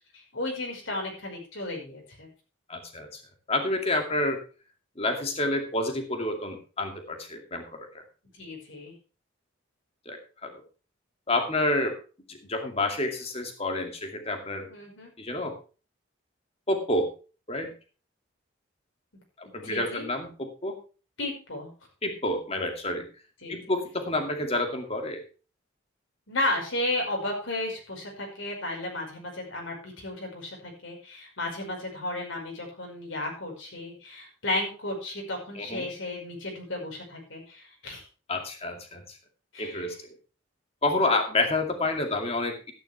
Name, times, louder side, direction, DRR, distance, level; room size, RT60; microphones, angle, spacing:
voice 1, 0.1-2.3 8.4-8.9 14.7-15.1 19.6-20.1 21.2-21.7 23.4-23.5 26.3-38.0 39.5-39.9, left 1 dB, 75° left, 0 dB, 5.4 m, -33 dB
voice 2, 2.7-3.2 3.5-4.4 5.0-7.9 10.1-10.5 11.3-12.0 12.3-14.7 15.2-15.6 16.7-17.1 17.5-17.7 19.4-20.8 22.0-23.1 23.5-25.2 35.5-35.9 38.3-39.0 39.6-40.0 40.8-42.7, left 2 dB, 30° left, 4 dB, 2.4 m, -29 dB
13.0 x 10.5 x 3.4 m, 0.35 s
head